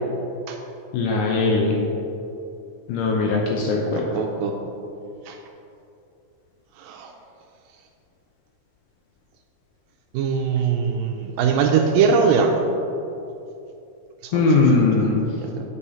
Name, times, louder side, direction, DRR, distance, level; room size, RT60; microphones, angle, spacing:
voice 1, 0.9-1.8 2.9-4.0 14.3-15.2, left 3 dB, 75° left, -1 dB, 1.9 m, -20 dB
voice 2, 3.9-4.5 5.3-5.4 6.8-7.1 10.1-12.5 14.2-15.6, right 6 dB, 80° right, 3 dB, 2.1 m, -22 dB
8.4 x 5.5 x 4.3 m, 2.8 s
omnidirectional pair, 4.3 m